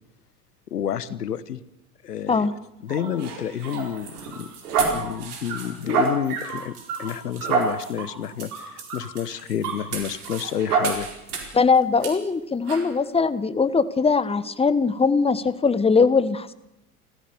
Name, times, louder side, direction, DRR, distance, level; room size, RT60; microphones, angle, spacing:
voice 1, 0.7-1.6 2.0-2.5 2.8-4.1 4.4-4.5 4.9-11.1, left 9 dB, 80° left, 17 dB, 1.1 m, -29 dB
sound 1, 2.9-11.6 12.0-12.1 12.7-12.9, right 5 dB, 70° right, 4.6 m, -28 dB
voice 2, 11.5-16.5, left 4 dB, 10° left, 14 dB, 1.2 m, -21 dB
29.5 x 14.0 x 6.9 m, 0.88 s
figure-of-eight pair, 75°, 47 cm